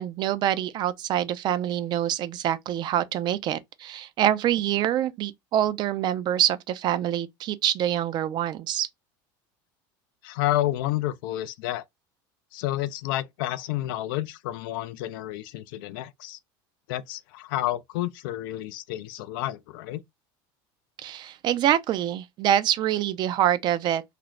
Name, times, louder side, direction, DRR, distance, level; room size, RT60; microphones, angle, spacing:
voice 1, 0.0-8.9 21.0-24.0, right 11 dB, 40° right, 0.4 m, -25 dB
voice 2, 10.2-11.8 12.5-16.4 16.9-20.0, left 14 dB, 80° left, 0.4 m, -30 dB
2.4 x 2.0 x 3.1 m
supercardioid pair, 125°, 11 cm